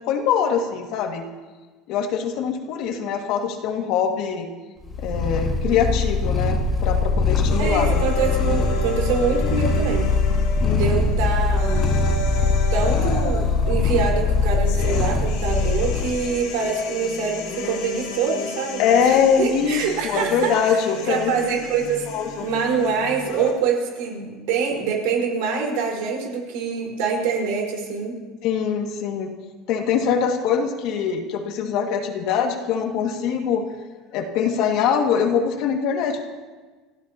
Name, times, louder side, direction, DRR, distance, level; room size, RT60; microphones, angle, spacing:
voice 1, 0.1-1.2 1.9-4.5 5.0-7.9 10.6-11.0 18.8-21.3 22.1-22.5 28.4-29.3 29.7-33.7 34.1-36.3, left 7 dB, 55° left, 3 dB, 2.0 m, -23 dB
Purr, 4.8-16.1, left 4 dB, 15° left, 1.9 m, -21 dB
sound 1, 7.5-23.5, left 3 dB, 75° left, 3.8 m, -34 dB
voice 2, 7.6-10.1 10.6-11.9 12.7-20.8 21.0-28.2, right 5 dB, 75° right, -1 dB, 4.8 m, -25 dB
29.5 x 15.5 x 2.9 m, 1.3 s
cardioid pair, 165°, 0 cm